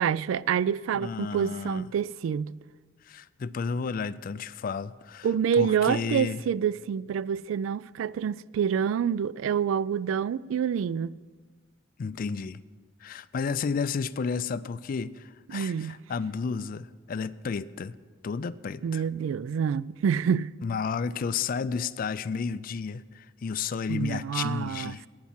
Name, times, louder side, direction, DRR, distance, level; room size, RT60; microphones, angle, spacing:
voice 1, 0.0-2.6 5.2-11.1 15.5-16.0 18.8-20.5 23.9-24.9, right 7 dB, 85° right, 0.3 m, -27 dB
voice 2, 0.9-1.9 3.1-5.3 5.6-6.4 12.0-12.6 13.0-18.0 18.2-19.0 20.6-25.0, left 5 dB, 45° left, 0.3 m, -32 dB
11.5 x 9.5 x 7.3 m
head